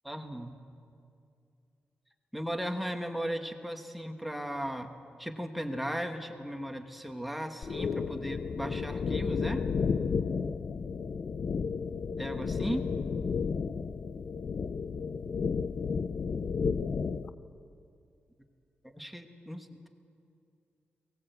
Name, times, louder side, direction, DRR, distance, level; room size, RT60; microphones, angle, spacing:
voice 1, 0.0-0.6 2.3-4.9 5.2-9.6 12.2-12.8 18.9-19.9, equal, ahead, 5 dB, 1.2 m, -36 dB
sound 1, 7.6-17.3, left 5 dB, 45° left, 0.5 m, -32 dB
22.0 x 18.5 x 8.1 m, 2.5 s
wide cardioid pair, 175°, 4 cm